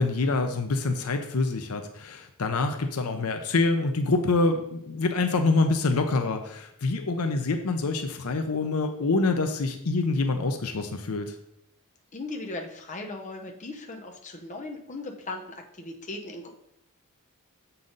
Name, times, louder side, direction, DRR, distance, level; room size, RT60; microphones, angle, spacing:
voice 1, 0.0-11.3, left 3 dB, 75° left, 6 dB, 0.7 m, -26 dB
voice 2, 12.1-16.5, left 2 dB, 35° left, 1 dB, 0.9 m, -38 dB
7.6 x 5.6 x 4.0 m, 0.75 s
head